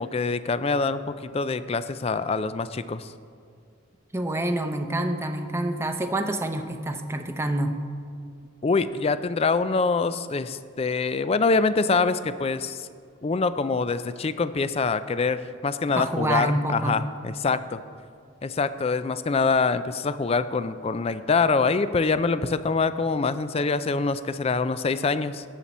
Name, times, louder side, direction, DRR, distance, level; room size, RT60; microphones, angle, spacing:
voice 1, 0.0-3.1 8.6-12.9 13.2-17.8 18.4-25.4, left 4 dB, 30° left, 13 dB, 0.4 m, -25 dB
voice 2, 4.1-7.7 16.0-17.0, right 1 dB, 10° right, 6 dB, 0.7 m, -27 dB
17.5 x 7.4 x 4.2 m, 2.3 s
head